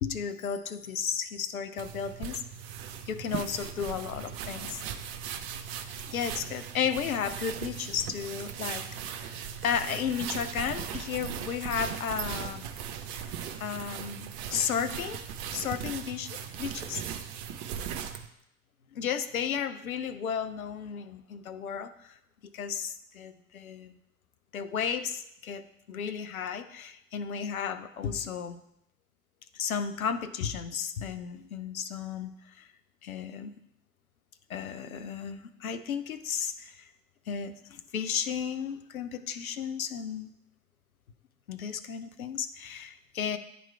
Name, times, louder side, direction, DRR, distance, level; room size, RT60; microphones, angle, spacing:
voice 1, 0.0-2.4 3.1-4.8 6.1-8.9 9.2-12.7 13.1-13.2 13.6-15.2 15.5-17.0 18.9-22.2 22.5-24.0 24.5-28.6 29.5-32.7 33.0-33.5 34.5-36.9 37.3-40.3 41.5-43.4, left 7 dB, 80° left, 10 dB, 0.5 m, -34 dB
sound 1, 1.8-18.3, right 8 dB, 50° right, 0.6 m, -38 dB
9.1 x 3.1 x 4.4 m, 0.78 s
figure-of-eight pair, 70°, 42 cm